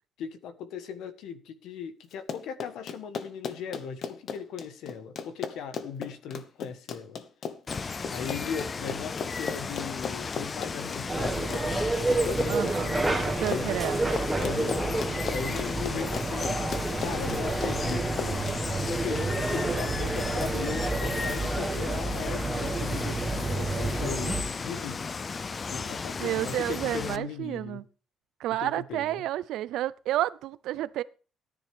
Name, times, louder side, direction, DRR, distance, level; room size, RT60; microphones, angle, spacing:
voice 1, 0.2-7.2 8.1-12.7 13.4-13.8 14.4-15.0 15.3-16.6 17.0-18.4 18.8-25.1 25.7-27.8 28.6-29.3, left 7 dB, 85° left, 1.3 m, -38 dB
Run, 2.1-18.6, left 6 dB, 50° left, 1.1 m, -37 dB
Water, 7.7-27.2, left 5 dB, 30° left, 0.4 m, -35 dB
sound 1, 11.1-24.4, right 2 dB, 10° right, 1.6 m, -30 dB
voice 2, 12.5-12.9 13.4-14.0 26.2-27.8 28.4-31.0, right 14 dB, 85° right, 0.5 m, -30 dB
14.0 x 10.0 x 3.5 m
cardioid pair, 145°, 0 cm